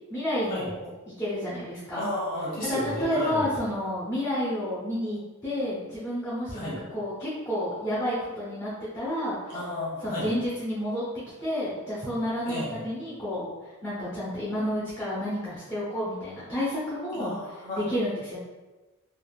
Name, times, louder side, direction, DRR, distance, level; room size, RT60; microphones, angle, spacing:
voice 1, 0.1-0.9 1.2-2.0 2.7-9.4 10.0-13.5 13.8-17.3 17.7-18.4, equal, 15° left, -11 dB, 0.7 m, -30 dB
voice 2, 1.9-3.5 6.5-6.8 9.5-10.3 12.4-12.8 17.1-17.8, left 1 dB, 35° left, -6 dB, 1.3 m, -32 dB
3.4 x 2.4 x 2.3 m, 1.1 s
head